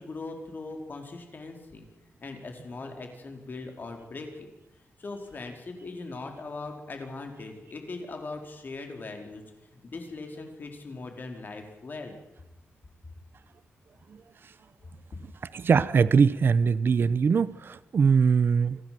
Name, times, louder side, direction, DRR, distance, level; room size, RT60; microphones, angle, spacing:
voice 1, 0.0-1.8 2.2-4.5 5.0-9.4 9.7-12.2, left 3 dB, 45° left, 4 dB, 4.3 m, -40 dB
voice 2, 15.5-18.8, right 5 dB, 55° right, 17 dB, 0.8 m, -22 dB
25.5 x 16.5 x 7.7 m, 0.96 s
wide cardioid pair, 135°, 5 cm